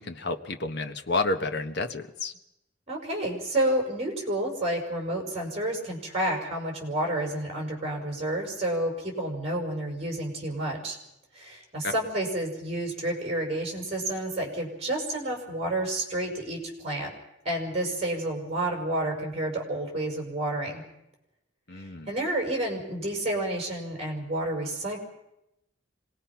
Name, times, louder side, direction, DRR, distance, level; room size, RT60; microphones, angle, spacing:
voice 1, 0.0-2.3 11.8-11.9 21.7-22.1, left 3 dB, 55° left, 6 dB, 1.3 m, -30 dB
voice 2, 2.9-11.0 11.3-17.1 17.4-20.8 21.7-25.0, right 1 dB, 30° right, 1 dB, 5.5 m, -30 dB
26.0 x 19.0 x 5.9 m, 0.87 s
head